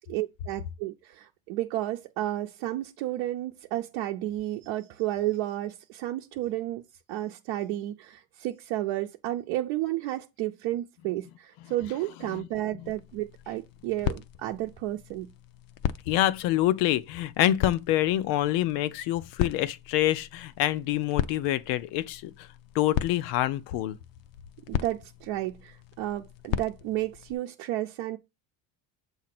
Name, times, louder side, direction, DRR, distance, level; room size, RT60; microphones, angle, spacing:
voice 1, 0.1-15.3 24.7-28.2, right 15 dB, 80° right, 0.7 m, -32 dB
sound 1, 12.8-27.3, left 11 dB, 50° left, 0.5 m, -37 dB
voice 2, 16.1-22.5 22.7-24.0, left 14 dB, 85° left, 0.7 m, -26 dB
7.4 x 2.7 x 5.9 m
cardioid pair, 150°, 44 cm